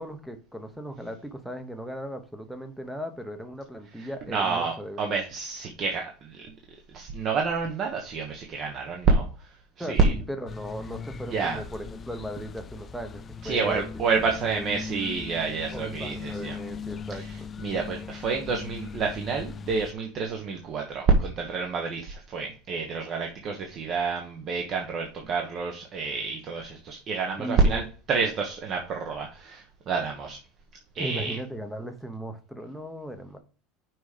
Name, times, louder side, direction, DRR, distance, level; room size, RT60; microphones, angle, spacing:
voice 1, 0.0-5.1 9.8-13.8 14.5-14.6 15.7-17.5 27.4-27.8 31.0-33.4, equal, ahead, 8 dB, 0.9 m, -37 dB
voice 2, 4.0-6.4 6.9-10.1 11.3-11.6 13.4-16.6 17.1-17.3 17.6-30.4 30.9-31.4, right 4 dB, 30° right, 2 dB, 1.1 m, -28 dB
sound 1, 10.5-19.9, left 5 dB, 20° left, 0.3 m, -39 dB
6.2 x 4.8 x 5.0 m, 0.38 s
supercardioid pair, 165°, 0 cm